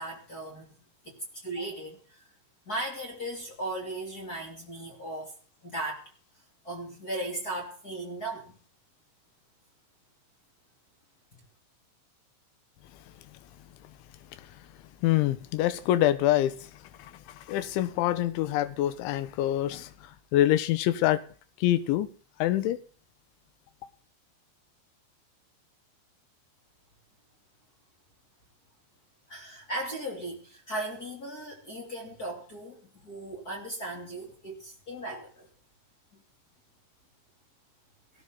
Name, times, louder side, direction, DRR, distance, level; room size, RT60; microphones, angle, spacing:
voice 1, 0.0-2.2 2.6-5.3 5.6-6.1 6.6-8.6 11.3-11.4 29.3-35.5 36.1-36.2, right 1 dB, 25° left, 2.8 m, -37 dB
voice 2, 15.0-16.7 17.0-19.9 20.3-21.2 21.6-22.1 22.4-22.8, left 13 dB, 85° left, 3.4 m, -25 dB
19.0 x 15.0 x 4.0 m
omnidirectional pair, 5.3 m